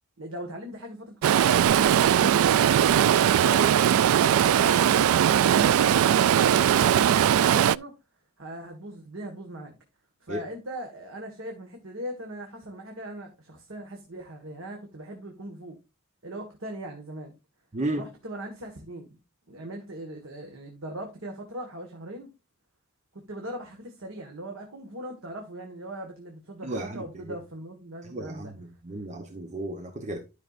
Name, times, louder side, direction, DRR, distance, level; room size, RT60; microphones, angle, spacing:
voice 1, 0.2-3.0 8.4-9.8 10.2-15.8 16.2-17.3 17.9-19.2 19.5-22.3 23.1-28.5, right 1 dB, 70° right, 1.7 m, -39 dB
Stream, 1.2-7.8, right 9 dB, 90° right, 0.3 m, -20 dB
voice 2, 17.7-18.1 26.6-27.4 28.0-30.2, right 1 dB, 35° right, 0.9 m, -34 dB
12.5 x 5.8 x 2.5 m
head